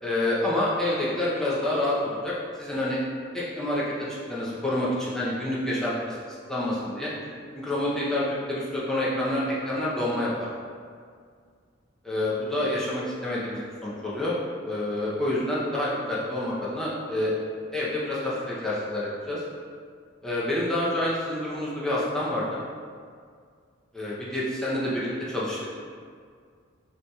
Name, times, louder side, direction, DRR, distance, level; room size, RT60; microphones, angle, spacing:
voice 1, 0.0-3.0 3.3-3.9 4.3-6.2 6.5-7.1 7.5-10.5 12.0-14.3 14.7-17.3 17.7-19.4 20.2-22.6 23.9-25.6, left 1 dB, 5° left, -8 dB, 0.6 m, -28 dB
5.7 x 2.9 x 2.3 m, 2.1 s
head